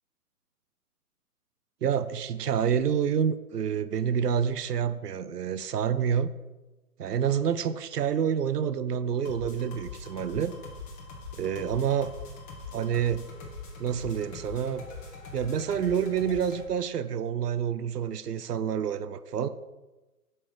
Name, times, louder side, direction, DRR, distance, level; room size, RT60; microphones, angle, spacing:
voice 1, 1.8-6.3 7.0-10.5 11.3-12.1 12.7-13.3 13.8-14.9 15.3-19.5, right 8 dB, 90° right, 12 dB, 0.5 m, -28 dB
sound 1, 9.2-16.6, left 4 dB, 15° left, 1.0 m, -42 dB
5.6 x 5.4 x 4.6 m, 1.1 s
figure-of-eight pair, 130°, 46 cm